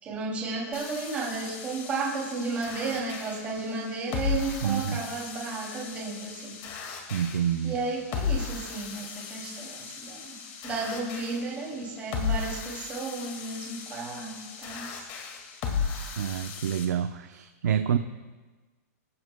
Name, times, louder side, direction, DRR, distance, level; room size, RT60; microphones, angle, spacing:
voice 1, 0.0-6.6 7.6-10.4 10.6-14.3 14.6-14.9, right 3 dB, 15° right, -3 dB, 2.7 m, -33 dB
sound 1, 0.7-16.8, left 6 dB, 30° left, 2.0 m, -36 dB
voice 2, 4.6-5.0 7.1-7.8 16.2-18.0, right 9 dB, 85° right, 7 dB, 0.8 m, -28 dB
26.5 x 14.5 x 2.3 m, 1.3 s
supercardioid pair, 170°, 9 cm